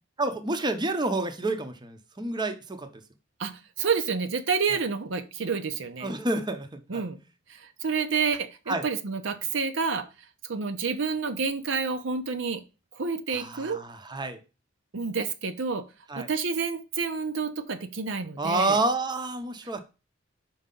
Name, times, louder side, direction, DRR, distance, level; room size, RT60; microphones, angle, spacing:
voice 1, 0.2-2.9 6.0-7.0 8.7-8.8 13.3-14.4 16.1-16.3 18.4-19.8, right 2 dB, 20° right, 0.7 m, -29 dB
voice 2, 3.4-6.1 6.9-7.2 7.5-10.1 10.5-12.6 12.9-13.8 14.9-15.8 16.2-18.8, right 5 dB, 70° right, 0.7 m, -29 dB
5.4 x 4.7 x 3.8 m
head